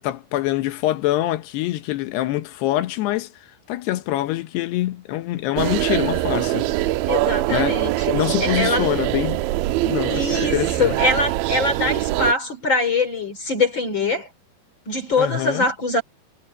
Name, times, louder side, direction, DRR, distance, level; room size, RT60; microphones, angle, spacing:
voice 1, 0.0-6.7 7.5-7.8 8.1-9.4 9.8-10.9 15.2-15.7, left 15 dB, 75° left, 2.8 m, -25 dB
sound 1, 5.6-12.3, right 17 dB, 90° right, 3.1 m, -23 dB
voice 2, 7.1-8.1 8.4-8.9 10.1-14.3 14.9-16.0, left 3 dB, 30° left, 3.0 m, -23 dB
omnidirectional pair, 5.3 m